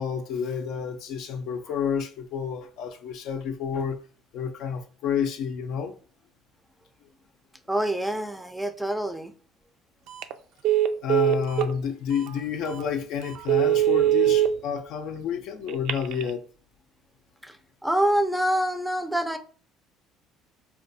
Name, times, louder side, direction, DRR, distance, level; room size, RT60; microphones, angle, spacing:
voice 1, 0.0-4.0 4.3-5.9 11.0-16.4, left 7 dB, 70° left, 0.5 m, -30 dB
voice 2, 7.7-9.3 17.4-17.6 17.8-19.4, right 1 dB, ahead, 0.4 m, -26 dB
Telephone, 10.1-10.3 10.6-11.7 12.3-12.4 12.8-12.9 13.3-14.5 15.7-16.3, right 13 dB, 70° right, 0.3 m, -22 dB
4.2 x 2.3 x 2.6 m
supercardioid pair, 90°, 0 cm